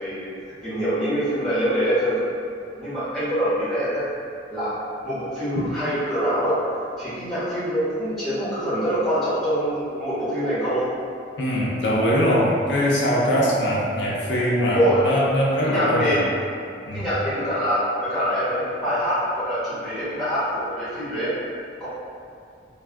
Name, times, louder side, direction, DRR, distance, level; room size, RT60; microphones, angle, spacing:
voice 1, 0.0-2.3 2.8-4.0 4.5-4.7 5.0-6.6 7.0-10.9 14.7-15.0 15.6-16.3 16.9-21.3 21.8-21.9, equal, ahead, -14 dB, 1.2 m, -24 dB
voice 2, 11.4-16.2 16.9-17.1, equal, 80° left, -5 dB, 0.5 m, -21 dB
3.2 x 2.2 x 2.3 m, 2.4 s
head